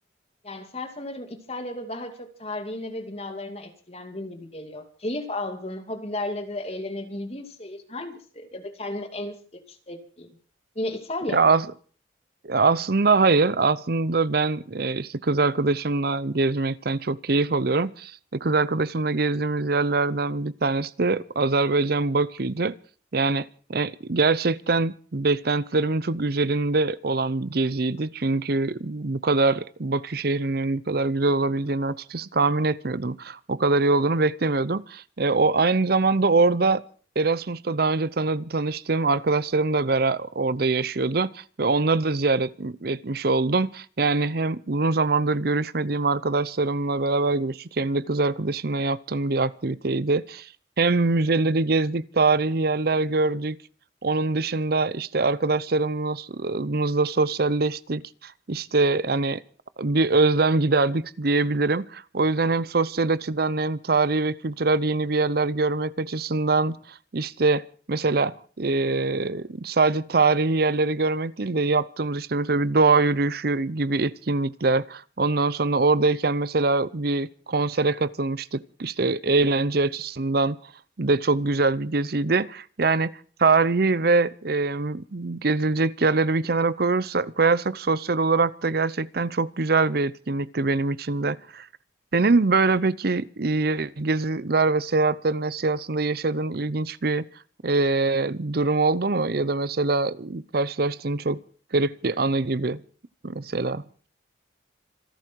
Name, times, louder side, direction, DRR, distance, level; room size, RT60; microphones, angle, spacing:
voice 1, 0.4-10.4 10.7-11.5, left 1 dB, 30° left, 2.6 m, -34 dB
voice 2, 11.3-11.7 12.4-22.7 23.1-36.8 37.2-50.5 50.8-53.6 54.0-59.4 59.8-67.6 67.9-80.6 81.0-83.1 83.4-91.7 92.1-97.3 97.6-101.4 101.7-102.8 103.2-103.8, right 3 dB, 50° right, 0.7 m, -23 dB
26.0 x 11.5 x 4.6 m
head